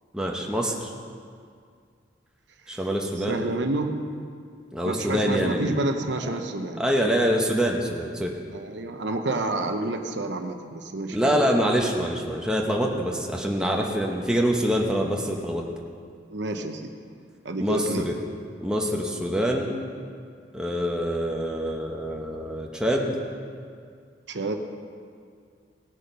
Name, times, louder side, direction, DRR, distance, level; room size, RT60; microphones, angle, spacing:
voice 1, 0.1-0.9 2.7-3.4 4.7-5.7 6.8-8.4 11.1-15.6 17.6-18.2 18.6-19.8 20.5-23.2, equal, 5° right, -1 dB, 0.9 m, -25 dB
voice 2, 3.2-3.9 4.8-6.8 8.5-11.4 16.3-16.9 17.4-18.1 24.3-24.5, right 2 dB, 75° right, 5 dB, 0.9 m, -29 dB
18.0 x 6.7 x 5.5 m, 2.2 s
head